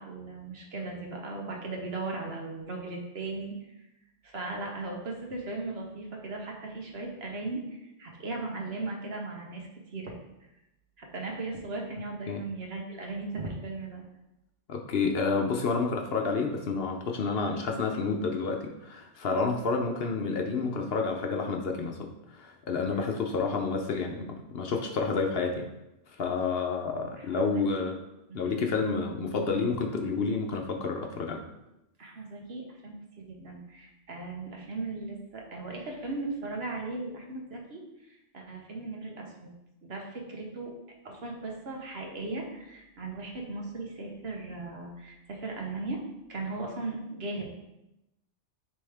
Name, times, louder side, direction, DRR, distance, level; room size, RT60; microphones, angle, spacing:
voice 1, 0.0-3.6 4.2-10.2 11.0-14.0 22.9-23.0 27.2-27.9 28.3-28.6 32.0-39.5 39.8-40.7 41.0-46.0 46.3-47.5, right 3 dB, 55° right, 0 dB, 1.3 m, -37 dB
voice 2, 14.7-25.7 26.2-28.0 28.3-31.4, left 4 dB, 60° left, 2 dB, 0.8 m, -29 dB
9.8 x 3.4 x 3.4 m, 0.91 s
omnidirectional pair, 1.2 m